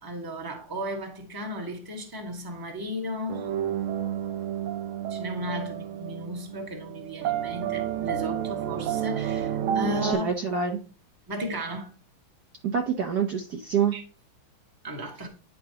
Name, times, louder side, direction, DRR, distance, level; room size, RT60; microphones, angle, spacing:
voice 1, 0.0-3.5 5.1-10.3 11.3-11.9 13.9-14.0 14.8-15.3, equal, 15° right, 1.1 m, -34 dB
sound 1, 3.3-10.1, right 10 dB, 85° right, 1.6 m, -30 dB
voice 2, 10.0-10.8 12.6-13.9, right 7 dB, 60° right, 1.2 m, -26 dB
9.9 x 4.6 x 2.8 m
omnidirectional pair, 2.2 m